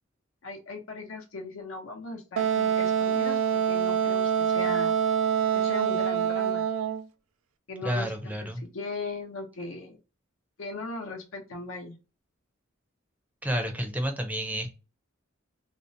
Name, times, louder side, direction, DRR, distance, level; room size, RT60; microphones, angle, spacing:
voice 1, 0.4-4.9 5.5-6.6 7.7-10.0 10.6-11.9, left 3 dB, 90° left, 3 dB, 0.8 m, -38 dB
Wind instrument woodwind instrument, 2.4-7.0, right 8 dB, 75° right, 0.3 m, -25 dB
voice 2, 7.8-8.7 13.4-14.7, equal, 10° right, 5 dB, 0.4 m, -30 dB
2.5 x 2.0 x 2.6 m, 0.31 s
head